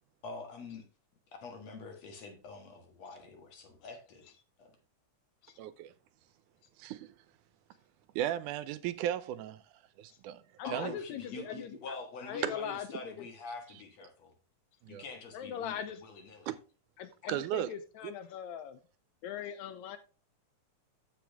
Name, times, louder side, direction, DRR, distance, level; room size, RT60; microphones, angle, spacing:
voice 1, 0.2-0.9 1.4-4.3 4.6-4.7 10.6-14.3 14.9-16.5, left 4 dB, 60° left, 2.8 m, -45 dB
voice 2, 5.6-5.9 6.8-7.2 8.2-9.6 10.0-10.4 10.7-11.0 12.4-12.5 14.8-15.0 16.5-16.6 17.3-17.7 18.0-18.1, right 12 dB, 85° right, 2.2 m, -35 dB
voice 3, 10.6-11.7 12.2-13.3 15.3-16.0 17.0-18.8 19.2-20.0, left 8 dB, 75° left, 1.9 m, -40 dB
13.5 x 5.2 x 3.5 m
omnidirectional pair, 3.5 m